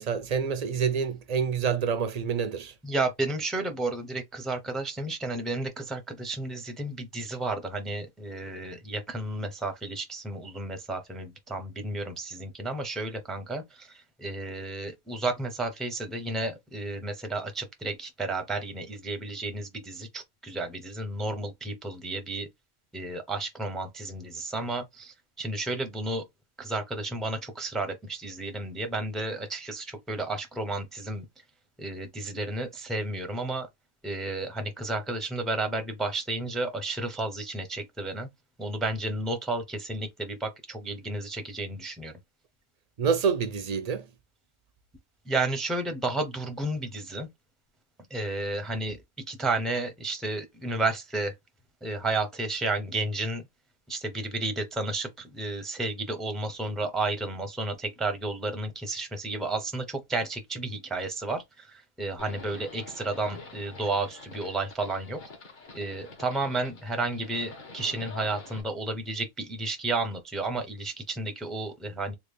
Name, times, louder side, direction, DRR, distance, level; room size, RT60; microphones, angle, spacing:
voice 1, 0.0-2.7 43.0-44.1, right 6 dB, 50° right, 0.5 m, -27 dB
voice 2, 2.8-22.5 22.9-26.2 26.6-31.3 31.8-33.7 34.0-38.3 38.6-42.1 45.3-47.3 48.1-51.3 51.8-53.4 53.9-65.2 65.7-72.1, right 2 dB, ahead, 0.5 m, -32 dB
Livestock farm animals working animals, 62.2-68.6, left 3 dB, 50° left, 1.1 m, -46 dB
3.5 x 2.3 x 3.2 m
omnidirectional pair, 1.1 m